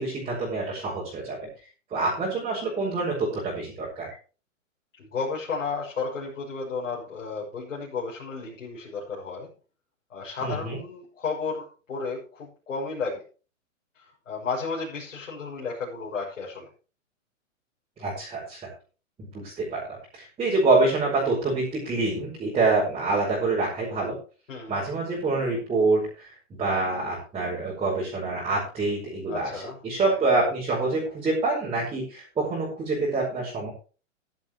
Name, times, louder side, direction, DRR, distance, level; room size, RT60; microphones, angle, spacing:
voice 1, 0.0-1.4 1.9-4.1 10.4-10.8 18.0-18.7 19.2-24.1 24.7-26.3 26.6-33.7, right 3 dB, 15° right, -4 dB, 5.1 m, -26 dB
voice 2, 5.0-9.5 10.1-13.2 13.9-16.7 24.5-24.8 29.3-30.2, left 4 dB, 85° left, -4 dB, 6.6 m, -33 dB
14.5 x 12.0 x 3.1 m, 0.35 s
hypercardioid pair, 140°, 38 cm